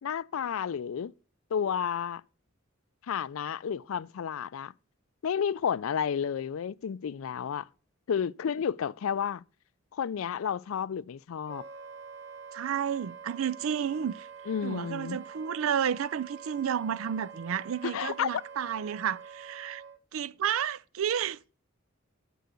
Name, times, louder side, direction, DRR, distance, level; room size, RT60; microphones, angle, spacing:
voice 1, 0.0-1.1 1.5-2.2 3.1-4.7 5.2-7.7 8.1-9.4 9.9-11.6 14.5-15.2 17.8-18.3, left 7 dB, 75° left, 0.4 m, -31 dB
Wind instrument woodwind instrument, 11.5-20.0, right 6 dB, 55° right, 1.0 m, -46 dB
voice 2, 12.5-14.3 14.6-19.8 20.1-21.4, right 8 dB, 75° right, 0.4 m, -31 dB
10.5 x 4.7 x 6.9 m
head